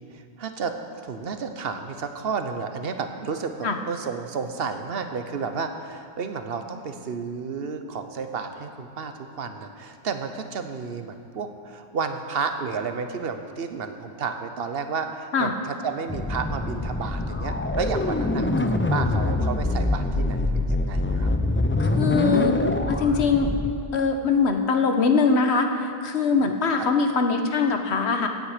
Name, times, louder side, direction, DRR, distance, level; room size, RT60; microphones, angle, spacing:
voice 1, 0.1-0.8 1.0-21.3 26.4-26.5 26.8-26.9, right 5 dB, 65° right, 7 dB, 1.0 m, -32 dB
sound 1, 16.1-23.7, left 2 dB, 15° left, 0.4 m, -24 dB
voice 2, 21.8-22.6 22.9-23.5 23.9-28.3, left 4 dB, 80° left, 5 dB, 1.3 m, -22 dB
16.0 x 9.3 x 5.0 m, 2.3 s
omnidirectional pair, 1.1 m